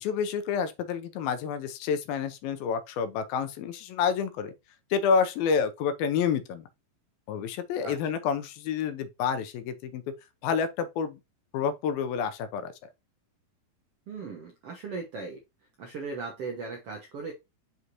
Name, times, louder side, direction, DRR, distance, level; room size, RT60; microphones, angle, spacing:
voice 1, 0.0-4.5 4.9-6.7 7.3-10.0 10.4-11.2 11.5-12.7, left 6 dB, 80° left, 2.6 m, -29 dB
voice 2, 7.8-8.2 14.1-15.4 15.8-17.3, right 4 dB, 70° right, 1.4 m, -38 dB
6.5 x 5.1 x 2.9 m
omnidirectional pair, 4.3 m